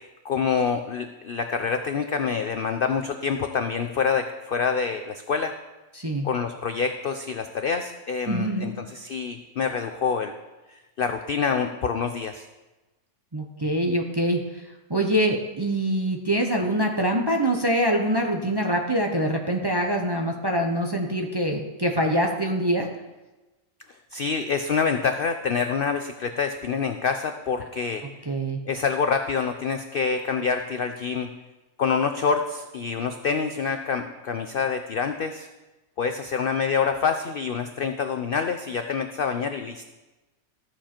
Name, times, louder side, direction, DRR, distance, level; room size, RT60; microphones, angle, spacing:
voice 1, 0.2-5.5 6.2-10.3 10.7-12.5 24.1-28.1 28.7-31.3 31.8-35.5 36.0-39.8, left 5 dB, 80° left, 7 dB, 0.5 m, -26 dB
voice 2, 5.9-6.3 8.3-8.7 13.3-14.4 14.9-22.9 28.3-28.6, right 1 dB, 25° right, 2 dB, 0.6 m, -24 dB
13.5 x 7.3 x 4.4 m, 1.1 s
omnidirectional pair, 1.6 m